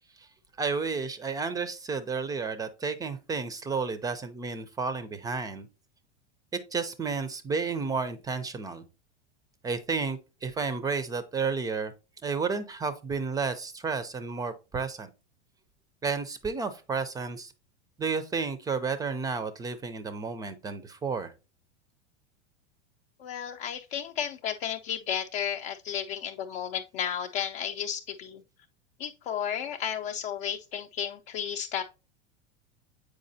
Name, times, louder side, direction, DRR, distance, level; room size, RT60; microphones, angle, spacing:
voice 1, 0.6-5.7 6.5-8.8 9.6-11.9 12.2-15.1 16.0-17.5 18.0-21.3, right 5 dB, 10° right, 0.4 m, -31 dB
voice 2, 23.2-28.4 29.0-31.8, left 9 dB, 60° left, 0.6 m, -33 dB
7.5 x 4.8 x 2.6 m
supercardioid pair, 120°, 35 cm